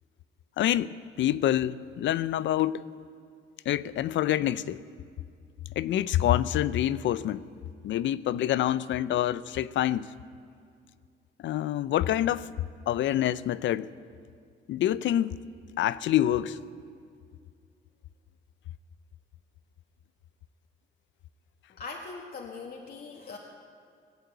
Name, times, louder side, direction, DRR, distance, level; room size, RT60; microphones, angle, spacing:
voice 1, 0.6-2.8 3.7-4.8 5.8-7.5 7.8-10.1 11.4-12.5 12.9-13.9 14.7-15.3 15.8-16.6, left 12 dB, 70° left, 0.5 m, -26 dB
voice 2, 21.7-23.4, left 4 dB, 50° left, 1.6 m, -41 dB
19.5 x 8.2 x 8.1 m
cardioid pair, 90°, 20 cm